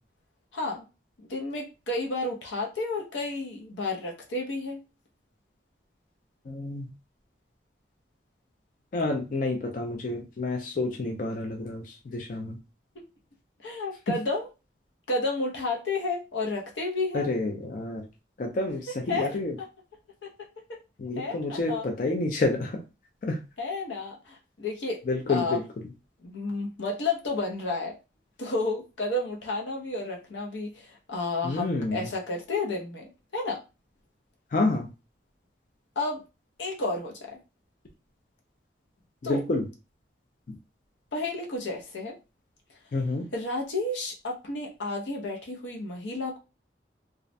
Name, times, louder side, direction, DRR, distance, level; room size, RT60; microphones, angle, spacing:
voice 1, 0.5-0.8 1.2-4.8 13.0-13.1 13.6-14.5 15.1-17.3 18.9-19.7 20.2-20.3 20.7-20.8 21.2-21.9 23.6-25.0 25.3-25.6 26.2-28.0 28.4-33.6 36.0-36.2 36.6-37.4 39.2-39.4 41.1-42.2 43.3-46.4, left 2 dB, 85° left, 0 dB, 0.6 m, -31 dB
voice 2, 6.5-6.8 8.9-12.6 17.1-18.0 18.4-19.5 21.0-22.8 23.2-23.4 25.1-25.6 31.4-32.0 34.5-34.9 39.2-39.6 40.5-40.6 42.9-43.3, left 2 dB, 45° left, 2 dB, 0.3 m, -29 dB
2.3 x 2.1 x 2.5 m, 0.29 s
head